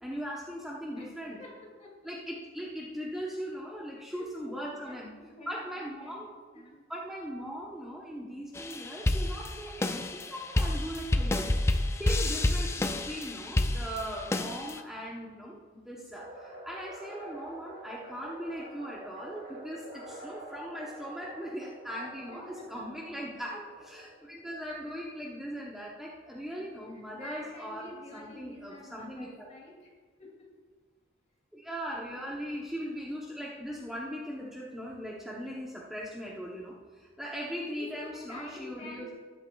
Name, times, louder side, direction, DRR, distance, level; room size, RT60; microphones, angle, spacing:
voice 1, 0.0-1.4 2.0-5.2 5.5-6.6 6.9-29.5 31.5-39.1, equal, ahead, -4 dB, 0.8 m, -39 dB
voice 2, 1.0-1.9 4.1-4.5 4.8-6.2 6.5-6.8 22.3-22.9 24.7-24.8 26.6-29.9 30.2-30.5 32.2-32.3 37.7-39.1, left 1 dB, 35° left, -2 dB, 2.4 m, -48 dB
sound 1, 8.5-14.8, left 1 dB, 15° left, 0.3 m, -29 dB
sound 2, 16.2-24.5, right 1 dB, 55° right, 2.4 m, -47 dB
13.0 x 11.0 x 2.3 m, 1.5 s
head